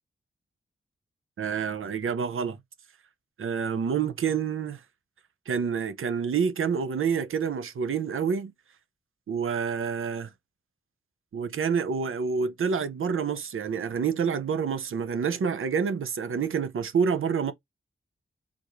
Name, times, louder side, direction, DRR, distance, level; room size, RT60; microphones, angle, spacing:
voice 1, 1.4-2.6 3.4-4.8 5.5-8.5 9.3-10.3 11.3-17.5, right 6 dB, 80° right, 0.7 m, -28 dB
4.7 x 3.7 x 2.6 m
wide cardioid pair, 115°, 21 cm